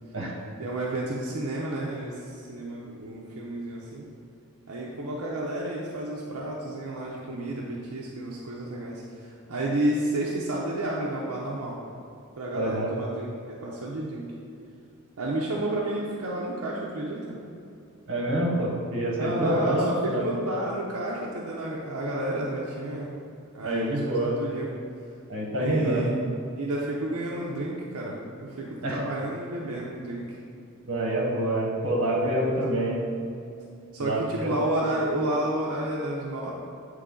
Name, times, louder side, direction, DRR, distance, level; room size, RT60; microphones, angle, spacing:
voice 1, 0.6-4.1 4.7-11.8 12.4-14.3 15.2-17.4 19.2-23.1 23.5-24.7 25.5-26.2 26.5-30.3 32.2-32.5 33.9-36.5, right 1 dB, 85° right, -4 dB, 0.6 m, -31 dB
voice 2, 12.5-12.9 18.1-20.2 23.6-24.4 25.3-26.1 28.8-29.0 30.8-33.0 34.0-34.5, right 1 dB, 65° right, -2 dB, 1.2 m, -27 dB
8.1 x 3.2 x 3.7 m, 2.6 s
head